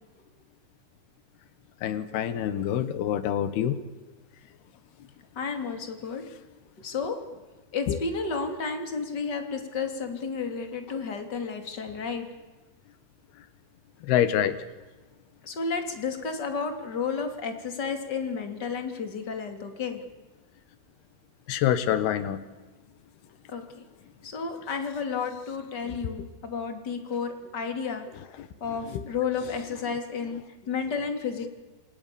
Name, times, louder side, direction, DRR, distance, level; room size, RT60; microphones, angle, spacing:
voice 1, 1.8-3.8 7.9-8.0 14.1-14.6 21.5-22.4 28.9-29.0, left 10 dB, 90° left, 13 dB, 3.4 m, -26 dB
voice 2, 5.4-6.2 6.8-7.2 7.7-12.2 15.4-20.0 23.5-23.8 24.2-28.1 28.6-31.5, left 5 dB, 30° left, 6 dB, 3.5 m, -32 dB
29.0 x 27.0 x 7.1 m, 1.2 s
omnidirectional pair, 4.4 m